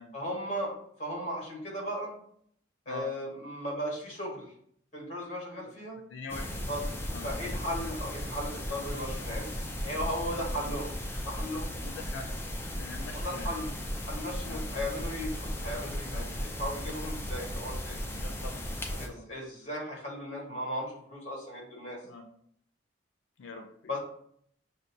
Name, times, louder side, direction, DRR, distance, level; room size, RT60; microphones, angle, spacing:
voice 1, 0.1-2.1 2.8-4.5 4.9-6.0 6.7-6.8 7.2-10.9 11.2-11.7 13.1-13.7 14.0-18.0 19.0-22.0 23.9-24.0, equal, 35° left, -3 dB, 1.3 m, -36 dB
voice 2, 6.0-6.5 7.1-7.3 10.6-10.7 11.8-12.3 12.8-13.5 14.4-14.6 16.1-16.3 18.1-18.6 18.9-19.2 20.5-20.6 22.0-22.2 23.4-23.7, left 3 dB, 85° left, 4 dB, 0.4 m, -43 dB
sound 1, 6.3-19.1, equal, 10° left, 0.3 m, -36 dB
6.2 x 2.2 x 2.6 m, 0.66 s
head